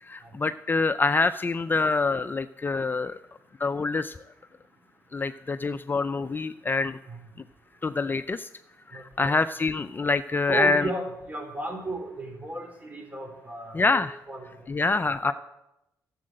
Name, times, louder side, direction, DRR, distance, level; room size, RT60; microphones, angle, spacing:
voice 1, 0.0-3.2 3.6-4.2 5.1-7.0 7.8-8.5 8.9-10.9 13.7-14.1 14.7-15.3, left 3 dB, 25° left, 12 dB, 0.4 m, -26 dB
voice 2, 8.9-9.4 10.5-14.5 14.9-15.3, right 2 dB, 20° right, 3 dB, 4.2 m, -35 dB
11.5 x 7.4 x 7.7 m, 0.88 s
cardioid pair, 70°, 7 cm